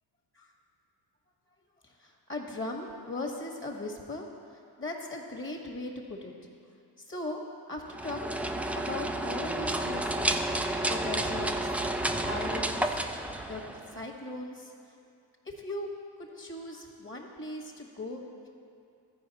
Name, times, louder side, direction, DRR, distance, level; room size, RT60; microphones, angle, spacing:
voice 1, 1.8-4.3 4.8-6.3 7.0-7.4 7.7-8.5 8.8-13.1 13.5-14.7 15.4-15.9 16.2-18.5, left 2 dB, 25° left, 1 dB, 1.6 m, -39 dB
sound 1, 7.9-14.0, right 1 dB, 5° right, 0.3 m, -31 dB
13.5 x 4.8 x 4.2 m, 2.4 s
hypercardioid pair, 60°, 48 cm